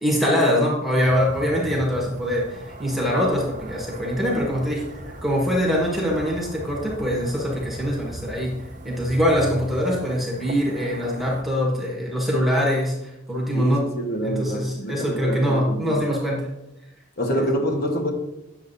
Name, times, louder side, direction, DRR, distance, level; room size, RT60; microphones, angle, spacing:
voice 1, 0.0-4.8 5.2-8.6 8.8-13.8 14.2-16.5, equal, ahead, -3 dB, 1.3 m, -23 dB
sound 1, 1.1-11.4, right 1 dB, 35° right, 0.7 m, -37 dB
voice 2, 13.5-16.0 17.2-18.1, equal, 45° left, 2 dB, 1.2 m, -26 dB
9.4 x 6.7 x 2.7 m, 0.92 s
head